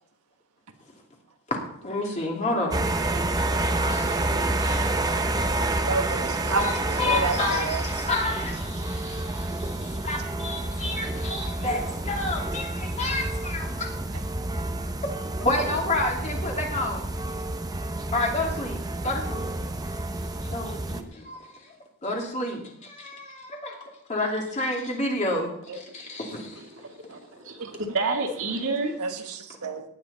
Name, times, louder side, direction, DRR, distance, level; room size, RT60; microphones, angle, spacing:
voice 1, 1.8-2.8 3.9-5.0 6.5-13.9 15.4-17.1 18.1-19.5 20.5-21.4 22.0-26.6, left 2 dB, 30° left, 0 dB, 2.8 m, -30 dB
sound 1, 2.7-21.0, right 2 dB, 15° right, 0.7 m, -29 dB
voice 2, 5.9-7.8 8.8-9.2 27.6-27.7 29.0-29.8, right 4 dB, 85° right, 4 dB, 1.5 m, -31 dB
voice 3, 26.6-28.9, right 3 dB, 60° right, 2 dB, 2.3 m, -30 dB
17.5 x 9.5 x 4.2 m, 0.71 s
head